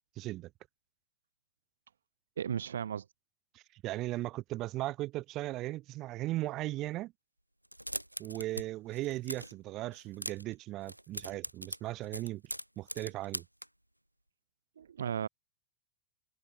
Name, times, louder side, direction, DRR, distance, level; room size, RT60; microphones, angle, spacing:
voice 1, 0.2-0.5 3.5-7.1 8.2-12.4 12.8-13.4, right 17 dB, 35° right, 5.0 m, -37 dB
voice 2, 2.4-3.0 14.8-15.3, right 8 dB, 65° right, 0.7 m, -35 dB
sound 1, 7.6-8.7 8.9-9.6 9.9-10.5 10.8-13.7, right 1 dB, 90° right, 5.6 m, -41 dB
figure-of-eight pair, 90°, 0 cm